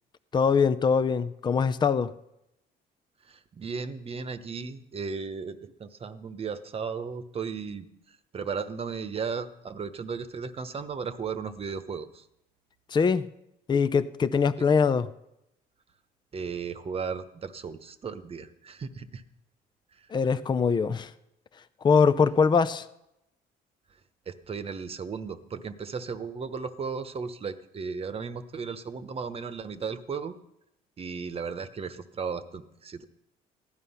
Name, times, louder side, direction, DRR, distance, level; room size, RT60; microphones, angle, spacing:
voice 1, 0.3-2.1 12.9-13.2 13.7-15.1 20.1-21.1 21.8-22.9, left 5 dB, 25° left, 12 dB, 0.6 m, -22 dB
voice 2, 3.2-12.3 16.3-19.2 20.0-20.1 24.3-30.4 31.0-33.0, right 5 dB, 35° right, 10 dB, 1.1 m, -35 dB
16.0 x 11.0 x 5.6 m, 0.83 s
cardioid pair, 110°, 17 cm